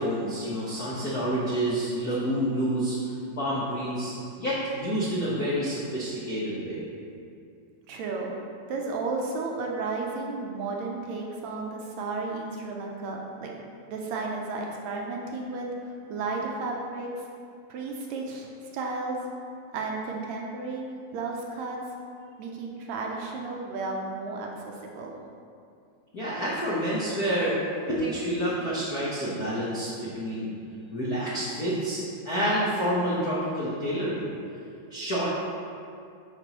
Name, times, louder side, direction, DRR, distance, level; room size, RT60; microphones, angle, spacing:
voice 1, 0.0-6.8 26.1-27.6 27.9-30.5 30.9-32.0 32.2-34.3 34.9-35.3, equal, 80° left, -8 dB, 0.8 m, -28 dB
voice 2, 7.9-8.3 8.7-13.5 13.9-17.2 17.7-19.2 19.7-20.9 21.1-21.8 22.4-24.6 25.0-25.1, right 3 dB, 75° right, 0 dB, 1.9 m, -33 dB
9.8 x 5.2 x 3.0 m, 2.4 s
omnidirectional pair, 3.4 m